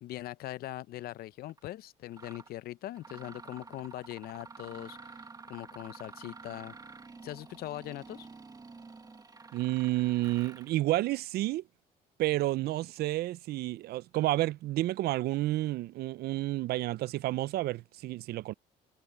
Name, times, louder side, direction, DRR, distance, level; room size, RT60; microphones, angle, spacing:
voice 1, 0.0-6.7 7.2-8.3, left 15 dB, 65° left, 0.5 m, -41 dB
Mechanisms, 1.5-1.6 2.1-2.5 3.0-10.8, right 4 dB, 20° right, 1.5 m, -49 dB
voice 2, 9.5-11.6 12.2-18.5, right 17 dB, 70° right, 0.5 m, -30 dB
cardioid pair, 110°, 17 cm